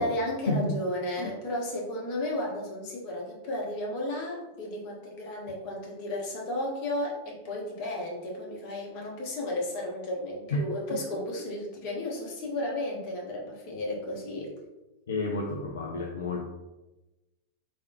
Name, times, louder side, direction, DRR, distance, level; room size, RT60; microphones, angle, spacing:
voice 1, 0.0-14.5, left 1 dB, 45° left, -2 dB, 1.2 m, -33 dB
voice 2, 15.1-16.5, left 2 dB, 60° left, 1 dB, 0.4 m, -30 dB
3.3 x 3.2 x 2.9 m, 1.0 s
figure-of-eight pair, 90°, 0 cm